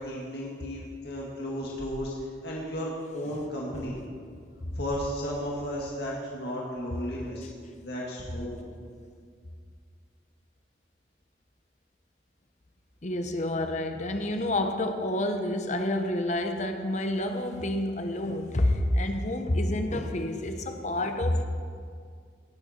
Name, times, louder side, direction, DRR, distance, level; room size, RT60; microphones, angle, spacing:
voice 1, 0.0-2.1 2.4-4.0 4.8-7.5 7.8-8.6, equal, 65° left, -4 dB, 1.9 m, -34 dB
voice 2, 13.0-21.4, left 1 dB, 40° left, 6 dB, 0.9 m, -28 dB
18.0 x 7.7 x 4.4 m, 2.1 s
head